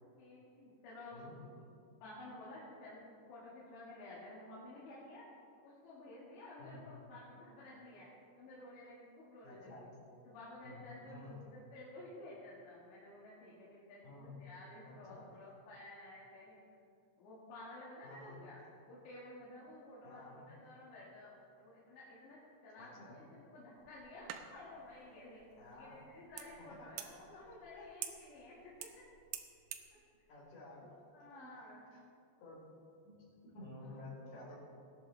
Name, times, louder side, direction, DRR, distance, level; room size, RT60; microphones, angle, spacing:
voice 1, 0.0-1.7 2.0-3.0 3.3-5.2 5.6-8.1 8.4-9.8 10.3-16.6 17.2-18.6 18.9-27.0 27.4-28.9 30.7-31.8 33.8-34.5, left 2 dB, 85° left, -8 dB, 4.3 m, -53 dB
voice 2, 9.4-9.8 10.6-11.4 14.0-14.4 14.8-15.3 18.0-18.5 20.0-20.4 22.8-23.2 25.6-26.0 26.6-27.1 27.7-27.9 30.3-30.9 31.2-31.6 32.4-32.6 33.0-34.5, left 2 dB, 60° left, -6 dB, 5.9 m, -53 dB
sound 1, 23.8-29.9, right 10 dB, 80° right, 2.1 m, -50 dB
19.5 x 11.5 x 3.4 m, 2.5 s
omnidirectional pair, 5.0 m